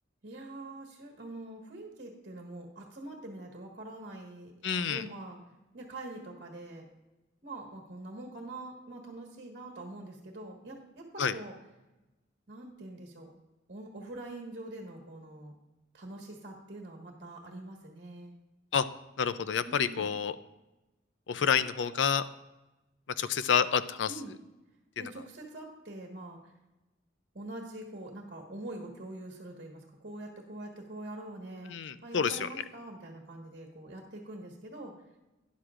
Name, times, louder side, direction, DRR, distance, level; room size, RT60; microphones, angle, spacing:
voice 1, 0.2-5.4 5.7-6.8 7.4-11.6 12.5-13.3 13.7-15.5 15.9-18.3 19.6-20.2 24.1-24.3 25.0-26.5 27.3-31.7 32.0-34.9, right 2 dB, 50° right, 0 dB, 1.5 m, -44 dB
voice 2, 4.6-5.0 11.2-11.3 18.7-18.8 19.2-20.3 21.3-22.2 23.2-24.1 31.7-32.3, left 7 dB, 70° left, 14 dB, 0.5 m, -28 dB
12.5 x 10.5 x 2.5 m, 1.0 s
head